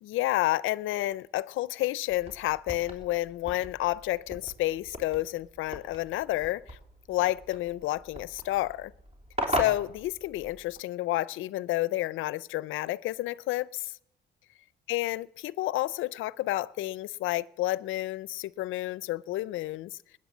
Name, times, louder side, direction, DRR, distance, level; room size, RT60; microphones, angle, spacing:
voice 1, 0.0-6.8 7.1-8.9 9.5-13.9 14.9-20.0, left 16 dB, 85° left, 0.5 m, -30 dB
sound 1, 2.1-10.8, equal, 35° right, 3.3 m, -39 dB
21.0 x 9.0 x 7.3 m
cardioid pair, 90°, 20 cm